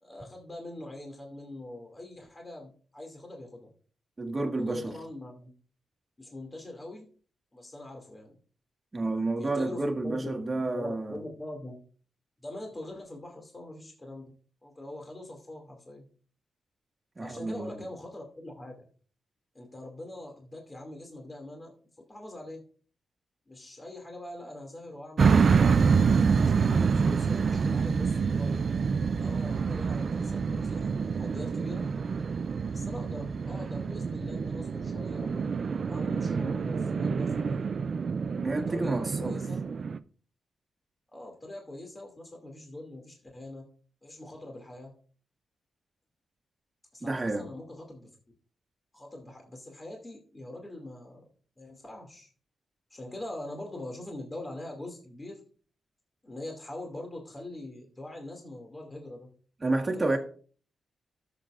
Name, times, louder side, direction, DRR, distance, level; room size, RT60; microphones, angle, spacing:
voice 1, 0.0-3.7 4.6-5.5 6.2-7.1 7.5-8.4 9.4-10.5 10.7-11.8 12.4-14.3 14.6-16.1 17.2-18.9 19.5-21.8 22.1-22.6 23.5-25.5 26.4-28.6 29.1-31.9 32.7-35.4 35.8-37.6 38.5-39.6 41.1-43.7 44.0-44.9 46.9-48.1 48.9-51.2 51.6-52.3 52.9-55.4 56.2-59.3 59.9-60.2, left 1 dB, 25° left, 2.5 m, -43 dB
voice 2, 4.2-4.9 8.9-11.2 17.2-17.8 38.4-39.4 47.0-47.5 59.6-60.2, right 2 dB, 30° right, 1.8 m, -30 dB
sound 1, 25.2-40.0, right 5 dB, 55° right, 0.5 m, -27 dB
13.5 x 7.0 x 2.5 m
cardioid pair, 80°, 0 cm